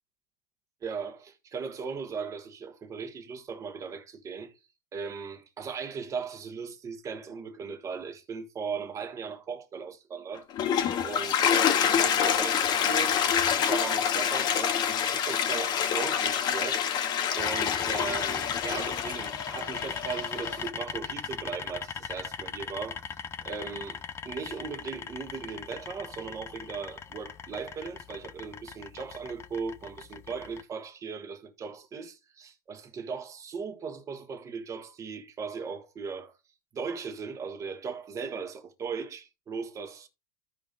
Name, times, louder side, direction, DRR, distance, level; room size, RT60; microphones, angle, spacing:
voice 1, 0.8-4.5 4.9-10.5 11.0-13.2 13.5-17.1 17.4-23.0 23.4-36.3 36.7-40.1, right 5 dB, 25° right, 1.4 m, -38 dB
Toilet flush, 10.4-20.7, left 8 dB, 35° left, 1.0 m, -27 dB
sound 1, 17.4-30.6, left 7 dB, 20° left, 0.5 m, -39 dB
14.0 x 5.1 x 2.5 m
supercardioid pair, 125°, 12 cm